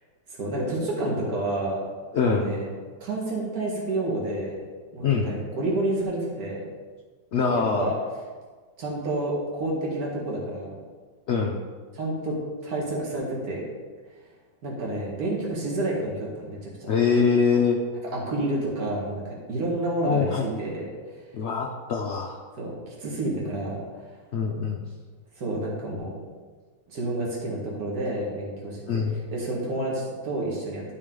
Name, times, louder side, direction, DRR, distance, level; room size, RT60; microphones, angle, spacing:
voice 1, 0.4-1.8 2.3-2.7 3.0-4.6 4.9-6.6 7.5-7.9 8.8-10.8 11.9-12.4 12.6-13.6 14.6-16.9 18.1-21.2 22.6-24.1 25.4-26.2 26.9-29.0 29.3-30.8, right 2 dB, 55° right, -3 dB, 2.2 m, -29 dB
voice 2, 2.1-2.5 5.0-5.3 7.3-7.9 11.3-11.6 16.9-17.8 20.0-20.5 21.3-22.4 24.3-24.8 28.9-29.1, left 5 dB, 75° left, 1 dB, 0.6 m, -23 dB
12.0 x 4.7 x 3.8 m, 1.5 s
omnidirectional pair, 2.0 m